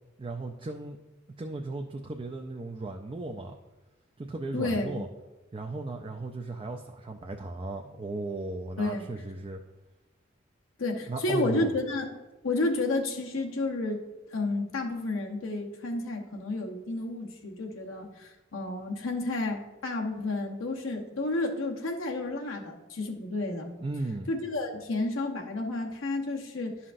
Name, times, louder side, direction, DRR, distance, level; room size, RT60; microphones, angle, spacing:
voice 1, 0.2-1.0 1.4-3.6 4.2-5.1 5.5-9.6 11.1-11.7 23.8-24.3, right 2 dB, 25° right, 3 dB, 0.4 m, -36 dB
voice 2, 4.5-5.0 8.8-9.1 10.8-12.2 12.4-14.0 14.3-23.7 24.3-26.8, left 2 dB, 90° left, 1 dB, 1.0 m, -31 dB
11.0 x 5.7 x 2.6 m, 1.1 s
head